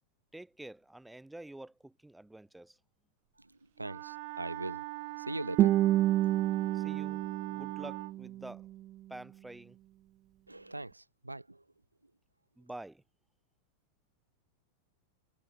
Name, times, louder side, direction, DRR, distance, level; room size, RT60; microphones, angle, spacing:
voice 1, 0.3-2.8 6.7-8.7 9.1-9.8 12.6-13.0, right 1 dB, 5° right, 5.5 m, -48 dB
Wind instrument woodwind instrument, 3.8-8.2, right 23 dB, 50° right, 2.3 m, -42 dB
voice 2, 3.8-4.8 5.3-5.7 10.5-11.4, right 2 dB, 85° right, 0.6 m, -40 dB
Guitar, 5.6-8.6, right 14 dB, 35° right, 0.5 m, -29 dB
figure-of-eight pair, 90°, 0 cm